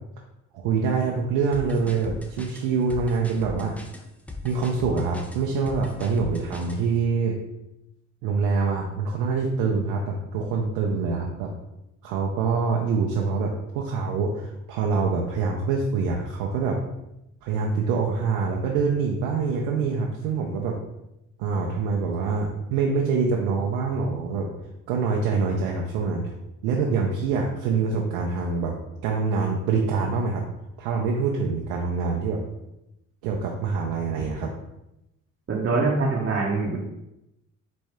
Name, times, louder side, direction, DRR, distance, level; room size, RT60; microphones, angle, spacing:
voice 1, 0.5-3.8 4.4-7.4 8.2-11.5 12.0-16.8 17.4-20.8 21.4-24.5 24.9-26.3 26.6-28.7 29.0-30.4 30.8-32.4 33.2-34.5, right 4 dB, 75° right, -1 dB, 0.6 m, -25 dB
sound 1, 1.5-6.8, left 2 dB, 5° left, 0.5 m, -38 dB
voice 2, 35.5-36.8, right 3 dB, 35° right, -3 dB, 0.8 m, -24 dB
4.2 x 2.6 x 3.4 m, 0.88 s
hypercardioid pair, 55°, 38 cm